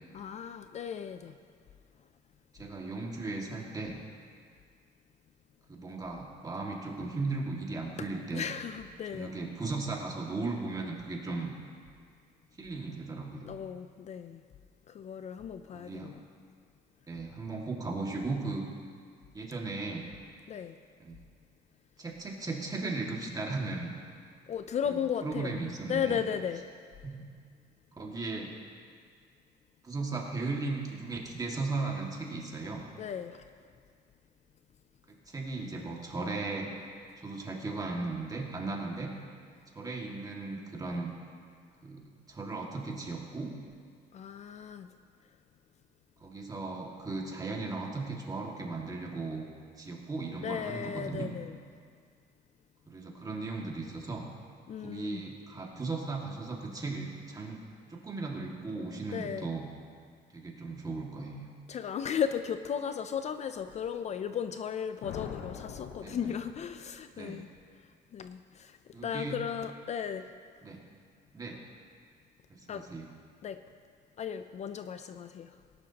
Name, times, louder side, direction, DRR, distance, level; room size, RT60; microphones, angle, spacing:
voice 1, 0.1-1.4 8.3-9.3 13.4-14.4 14.9-16.2 20.5-20.8 24.5-25.6 25.9-26.6 33.0-33.5 44.1-44.9 50.4-51.6 54.7-55.2 59.1-59.5 61.7-67.5 68.1-70.3 72.7-72.8 73.4-73.6 74.2-75.5, left 8 dB, 40° left, 10 dB, 0.4 m, -35 dB
voice 2, 2.5-4.0 5.7-8.5 9.1-11.5 12.6-13.5 15.7-16.1 17.1-18.6 19.3-20.1 21.0-21.1 22.0-23.9 24.8-26.2 27.0-27.2 27.9-28.5 29.8-32.9 35.3-36.7 37.2-39.1 39.7-41.1 41.8-43.5 46.2-49.5 49.8-51.3 52.9-54.2 54.8-57.6 57.9-59.7 60.3-61.4 66.0-66.3 67.1-67.4 68.9-69.3 70.6-70.8 71.3-71.6 72.5-73.1, right 3 dB, 20° right, -1 dB, 2.0 m, -36 dB
sound 1, 65.0-67.0, left 7 dB, 85° left, 1.0 m, -43 dB
18.5 x 11.0 x 2.9 m, 2.1 s
cardioid pair, 110°, 17 cm